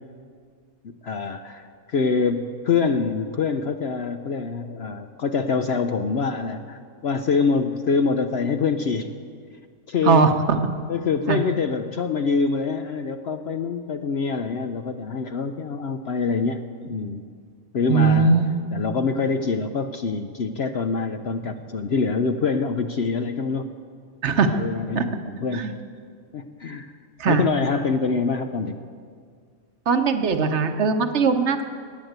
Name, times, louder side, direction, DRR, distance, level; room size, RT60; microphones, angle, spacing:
voice 1, 0.8-9.1 9.9-10.3 10.9-17.2 17.7-18.3 18.7-23.7 24.5-25.7 26.3-26.9 27.2-28.8, left 5 dB, 55° left, 7 dB, 0.8 m, -25 dB
voice 2, 17.9-18.6 24.2-24.6 24.9-25.1 25.5-25.7 27.2-27.4 29.9-31.6, right 5 dB, 55° right, 8 dB, 1.2 m, -20 dB
20.0 x 8.9 x 8.0 m, 2.1 s
omnidirectional pair, 1.5 m